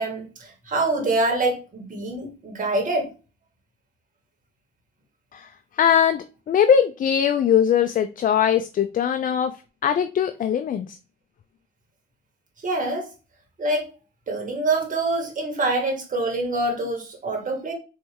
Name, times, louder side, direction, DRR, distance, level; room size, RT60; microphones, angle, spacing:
voice 1, 0.0-3.1 12.6-13.1 13.6-13.9 14.3-17.7, right 2 dB, 40° right, 2 dB, 1.9 m, -25 dB
voice 2, 5.8-9.5 9.8-10.9, left 8 dB, 45° left, 9 dB, 0.4 m, -20 dB
4.4 x 3.2 x 3.4 m, 0.32 s
cardioid pair, 90°, 20 cm